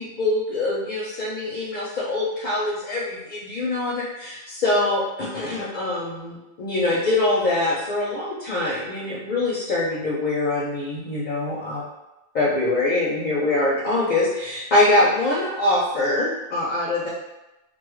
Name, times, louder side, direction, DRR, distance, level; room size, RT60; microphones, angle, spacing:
voice 1, 0.0-11.8 12.3-17.1, left 2 dB, 55° left, -5 dB, 0.6 m, -24 dB
2.5 x 2.3 x 3.1 m, 1.0 s
omnidirectional pair, 1.1 m